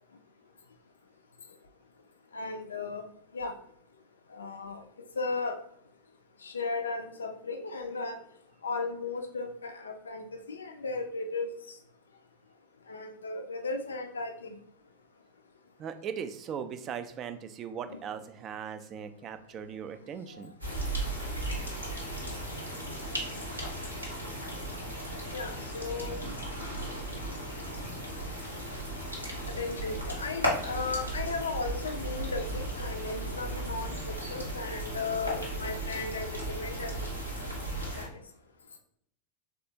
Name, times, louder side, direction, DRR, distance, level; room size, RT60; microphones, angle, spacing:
voice 1, 2.3-3.0 3.3-3.5 4.3-4.8 5.2-5.6 6.4-8.2 8.6-11.5 12.9-14.5 25.3-26.2 29.5-37.1 38.0-38.1, left 3 dB, 70° left, 6 dB, 0.3 m, -35 dB
voice 2, 15.8-20.5, right 7 dB, 30° right, 10 dB, 0.3 m, -39 dB
sound 1, 20.6-38.1, right 1 dB, 85° right, 1.0 m, -36 dB
3.4 x 2.3 x 2.7 m, 0.70 s
figure-of-eight pair, 90°, 0 cm